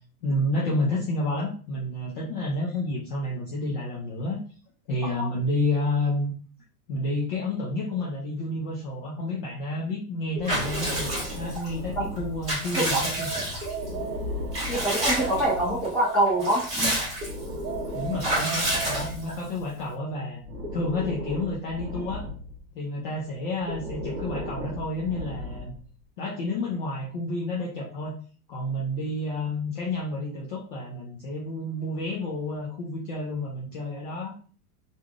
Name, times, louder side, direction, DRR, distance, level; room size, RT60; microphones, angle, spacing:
voice 1, 0.2-4.4 4.9-6.3 6.9-13.3 17.9-20.4 20.7-22.3 22.7-25.7 26.2-28.2 28.5-34.3, left 2 dB, 35° left, -4 dB, 0.5 m, -30 dB
Breathing, 10.3-12.8 13.5-15.9 17.0-19.8 20.4-22.6 23.6-25.9, left 1 dB, 45° right, 1.0 m, -36 dB
Water / Bathtub (filling or washing) / Liquid, 10.4-11.7 12.2-13.9 14.5-15.5 15.8-15.9 16.3-17.4 18.2-19.5, right 1 dB, 15° right, 1.4 m, -29 dB
sound 1, 12.9-14.7 15.2-17.1 17.6-19.5, right 7 dB, 85° right, 0.8 m, -37 dB
voice 2, 14.7-16.6, right 1 dB, ahead, -9 dB, 0.9 m, -24 dB
3.1 x 2.5 x 2.4 m, 0.41 s
supercardioid pair, 170°, 48 cm